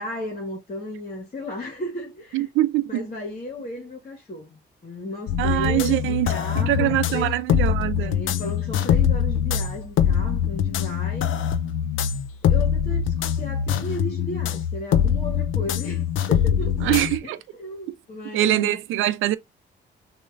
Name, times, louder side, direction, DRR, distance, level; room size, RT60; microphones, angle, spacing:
voice 1, 0.0-2.5 2.8-7.4 8.0-11.4 12.4-18.8, left 1 dB, 35° left, 1.8 m, -35 dB
voice 2, 2.3-3.1 5.4-8.2 16.8-17.4 18.3-19.4, right 15 dB, 90° right, 0.6 m, -23 dB
sound 1, 5.3-17.2, left 8 dB, 80° left, 0.6 m, -23 dB
6.4 x 2.9 x 2.6 m
cardioid pair, 90°, 20 cm